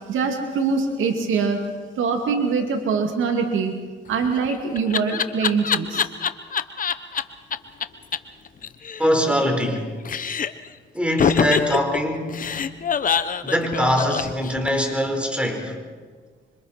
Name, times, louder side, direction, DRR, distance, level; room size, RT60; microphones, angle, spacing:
voice 1, 0.1-1.6 2.0-3.7 4.1-6.1, right 5 dB, 80° right, 3 dB, 2.5 m, -23 dB
Laughter, 4.1-7.2 7.5-7.6 7.8-7.9 8.1-8.2 8.5-9.8 10.0-10.7 11.2-14.9, left 7 dB, 45° left, 1.0 m, -24 dB
voice 2, 9.0-9.9 10.9-12.4 13.4-15.8, equal, 5° right, 3 dB, 4.5 m, -22 dB
26.5 x 25.0 x 4.4 m, 1.5 s
cardioid pair, 90°, 20 cm